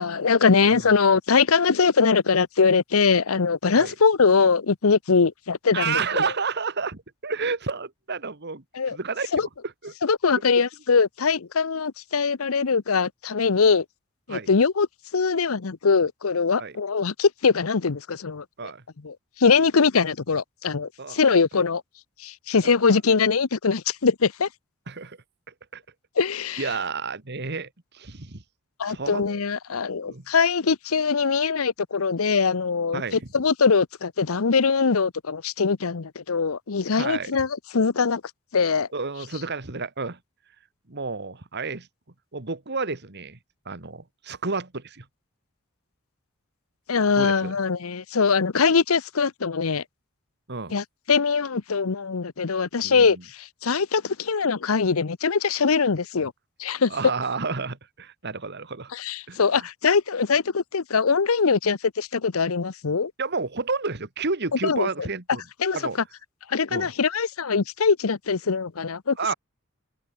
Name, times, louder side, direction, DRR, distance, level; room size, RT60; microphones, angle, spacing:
voice 1, 0.0-6.3 8.7-9.0 9.3-9.5 10.0-13.8 14.3-14.9 15.1-18.4 19.0-21.8 22.2-24.5 26.2-26.6 28.8-38.2 38.5-38.9 46.9-49.8 50.7-56.3 56.6-57.0 58.9-63.1 64.6-64.9 65.6-65.8 66.5-69.3, left 5 dB, 85° left, 0.8 m, -22 dB
voice 2, 5.7-9.5 9.8-9.9 14.3-14.5 16.6-16.8 18.6-18.8 21.0-21.2 22.6-23.0 24.9-25.2 25.5-25.8 26.6-27.7 27.9-28.4 28.8-29.4 30.1-30.3 32.9-33.2 36.9-37.3 38.9-40.2 40.9-41.9 42.3-43.4 43.7-45.1 47.2-47.5 50.5-50.7 52.8-53.2 56.9-58.9 59.3-59.7 63.2-65.4 65.7-66.0 66.7-66.9 69.2-69.3, right 4 dB, 55° right, 2.0 m, -30 dB
open air
head